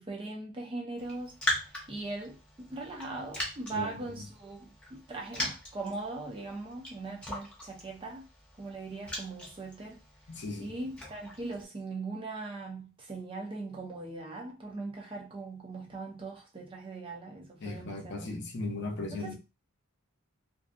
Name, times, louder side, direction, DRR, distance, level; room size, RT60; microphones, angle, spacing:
voice 1, 0.0-1.4 1.9-8.3 8.6-10.0 10.6-18.3 19.1-19.4, right 3 dB, 25° right, 0.4 m, -40 dB
Raindrop, 1.0-11.6, left 1 dB, 5° left, 0.7 m, -40 dB
voice 2, 3.7-4.2 10.3-10.7 17.6-19.4, left 2 dB, 50° left, 0.6 m, -37 dB
2.5 x 2.3 x 2.4 m
head